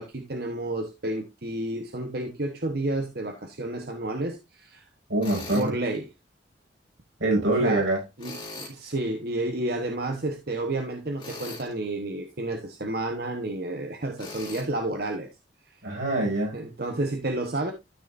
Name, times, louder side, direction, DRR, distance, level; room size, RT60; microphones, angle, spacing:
voice 1, 0.0-4.8 5.5-6.1 7.4-7.9 8.2-15.3 16.5-17.7, right 2 dB, 55° right, 1.1 m, -31 dB
voice 2, 5.1-5.7 7.2-8.0 15.8-16.6, right 2 dB, 90° right, 6.1 m, -24 dB
Tools, 5.2-5.7 8.2-8.8 11.2-11.7 14.2-14.7, left 2 dB, 25° left, 4.0 m, -39 dB
13.0 x 6.4 x 2.6 m
head